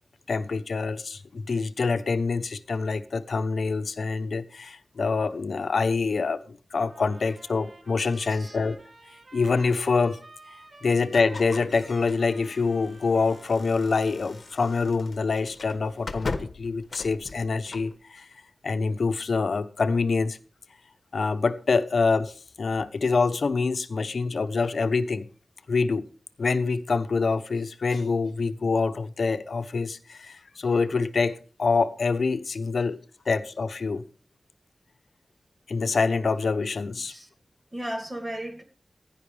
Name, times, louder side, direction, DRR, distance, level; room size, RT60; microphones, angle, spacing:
voice 1, 0.3-8.8 9.3-10.2 10.8-18.3 18.6-20.4 21.1-25.3 25.7-26.0 26.4-33.0 33.3-34.0 35.7-37.1, left 4 dB, 70° left, 1.0 m, -26 dB
sound 1, 6.8-14.6, right 2 dB, 50° right, 2.9 m, -51 dB
voice 2, 8.2-8.6 37.1-37.3 37.7-38.6, right 1 dB, 20° right, 2.7 m, -35 dB
sound 2, 11.1-18.0, left 3 dB, 55° left, 1.3 m, -40 dB
16.0 x 10.5 x 3.4 m
wide cardioid pair, 105°, 0 cm